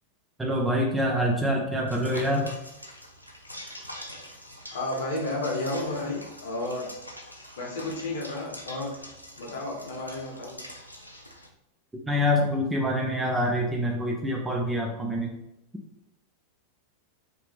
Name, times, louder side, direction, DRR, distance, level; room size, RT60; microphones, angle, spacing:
voice 1, 0.4-2.5 12.1-15.3, equal, 5° right, 0 dB, 0.6 m, -26 dB
sound 1, 1.9-11.5, left 1 dB, 90° left, 0.5 m, -44 dB
voice 2, 4.7-6.9 7.6-8.9 9.4-10.7, left 2 dB, 60° left, -2 dB, 1.3 m, -32 dB
5.0 x 2.8 x 3.3 m, 0.88 s
figure-of-eight pair, 90°, 0 cm